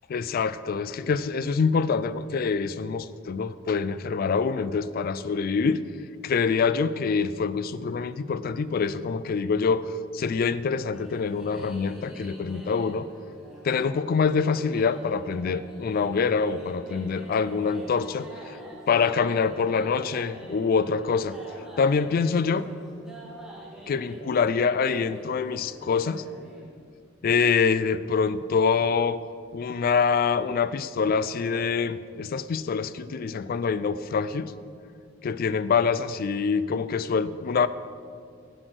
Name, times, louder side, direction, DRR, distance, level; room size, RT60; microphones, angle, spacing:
voice 1, 0.1-5.8 6.2-13.1 13.6-18.6 18.9-21.4 21.8-22.7 23.9-26.2 27.2-29.2 29.5-34.5 35.2-37.7, left 5 dB, 45° left, 15 dB, 0.3 m, -25 dB
sound 1, 10.9-26.6, right 1 dB, ahead, 1.8 m, -46 dB
8.0 x 7.8 x 6.2 m, 2.3 s
head